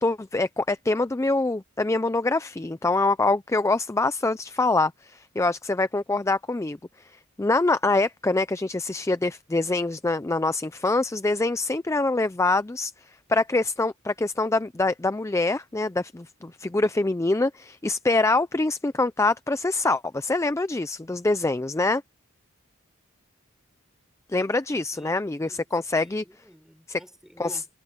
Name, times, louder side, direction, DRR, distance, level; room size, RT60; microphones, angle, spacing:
voice 1, 0.0-7.1 7.4-12.9 13.3-22.0 24.3-26.2 26.9-27.0 27.4-27.6, left 2 dB, 15° left, 0.4 m, -25 dB
voice 2, 24.9-25.7 26.0-27.7, equal, ahead, 6.0 m, -49 dB
head